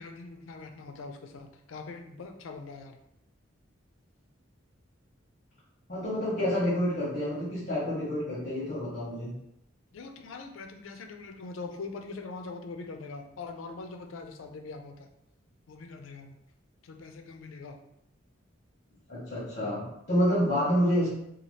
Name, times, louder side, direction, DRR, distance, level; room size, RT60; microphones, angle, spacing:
voice 1, 0.0-3.0 9.9-15.1 15.7-16.4 16.8-17.8, left 3 dB, 85° left, 5 dB, 0.4 m, -42 dB
voice 2, 5.9-9.3 19.1-21.1, equal, 45° left, -11 dB, 1.1 m, -28 dB
2.8 x 2.3 x 3.1 m, 0.78 s
head